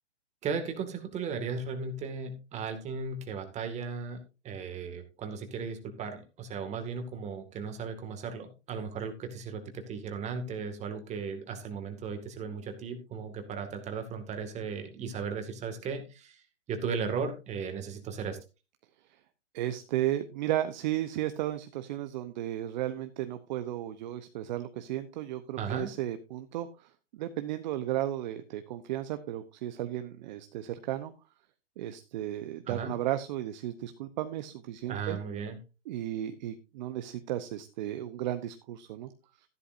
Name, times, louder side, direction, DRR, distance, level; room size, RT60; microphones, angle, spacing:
voice 1, 0.4-4.2 4.4-16.4 16.7-18.4 25.6-25.9 32.7-32.9 34.9-35.6, right 5 dB, 20° right, 7 dB, 2.1 m, -36 dB
voice 2, 19.5-31.1 31.8-35.2 35.9-39.1, right 13 dB, 40° right, 10 dB, 0.9 m, -34 dB
13.5 x 11.5 x 2.7 m, 0.29 s
hypercardioid pair, 135°, 36 cm